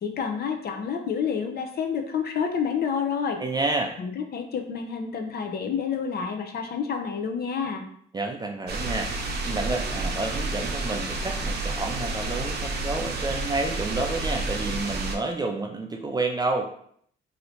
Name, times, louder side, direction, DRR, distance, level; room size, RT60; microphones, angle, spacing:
voice 1, 0.0-3.4 4.0-7.8, left 6 dB, 55° left, 4 dB, 0.6 m, -29 dB
voice 2, 3.4-3.9 8.1-16.7, right 3 dB, 20° right, 3 dB, 0.4 m, -29 dB
sound 1, 8.7-15.2, right 2 dB, 55° right, 0.7 m, -30 dB
3.1 x 2.7 x 2.7 m, 0.64 s
cardioid pair, 90°, 20 cm